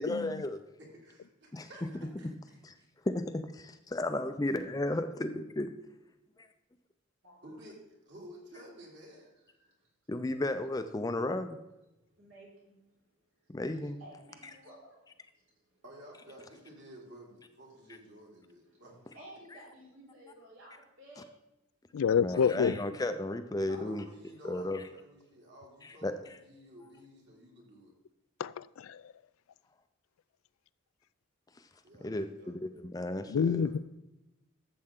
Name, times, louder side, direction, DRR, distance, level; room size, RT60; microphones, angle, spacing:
voice 1, 0.0-0.6 1.5-1.7 2.6-2.7 3.1-5.7 6.4-6.5 10.1-11.6 13.5-14.0 22.2-24.1 24.4-24.8 25.8-26.2 32.0-33.7, left 1 dB, 20° left, 0.4 m, -34 dB
voice 2, 0.8-2.8 7.4-7.8 8.1-9.3 15.8-19.0 22.3-22.5 23.7-27.9 31.8-32.5 33.4-33.7, equal, 55° right, 3.0 m, -53 dB
voice 3, 9.5-9.9 12.1-13.0 13.8-15.0 15.3-15.8 17.7-17.8 18.6-18.8 19.1-21.3, right 1 dB, 85° right, 4.3 m, -54 dB
voice 4, 21.9-22.8 28.4-29.0 33.3-33.8, left 7 dB, 90° left, 0.4 m, -28 dB
12.0 x 7.6 x 3.7 m
head